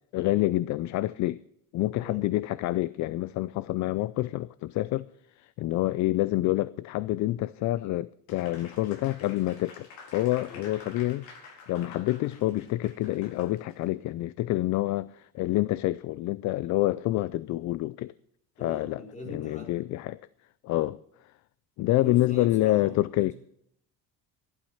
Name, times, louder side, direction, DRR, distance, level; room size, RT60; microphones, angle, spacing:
voice 1, 0.1-1.4 1.7-5.1 5.4-9.9 10.1-18.1 18.6-19.0 19.3-20.2 20.6-21.0 21.8-23.3, left 16 dB, 45° left, 0.4 m, -27 dB
Applause, 8.3-13.8, left 4 dB, 65° left, 4.4 m, -49 dB
voice 2, 18.6-19.8 21.9-23.3, left 3 dB, 20° left, 4.1 m, -42 dB
15.0 x 12.0 x 5.6 m
cardioid pair, 160°, 39 cm